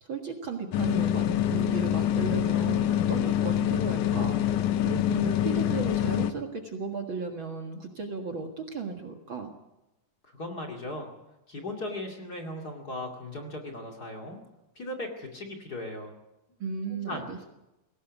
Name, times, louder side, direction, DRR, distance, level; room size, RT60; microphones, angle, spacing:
voice 1, 0.0-4.4 4.8-9.5 16.6-17.4, right 4 dB, 45° right, 3 dB, 2.2 m, -35 dB
sound 1, 0.7-6.3, left 11 dB, 90° left, 2.5 m, -26 dB
voice 2, 10.2-11.1 11.5-14.4 14.8-16.1 17.1-17.3, left 1 dB, 35° left, 2 dB, 2.6 m, -37 dB
20.0 x 17.5 x 8.2 m, 0.95 s
omnidirectional pair, 3.5 m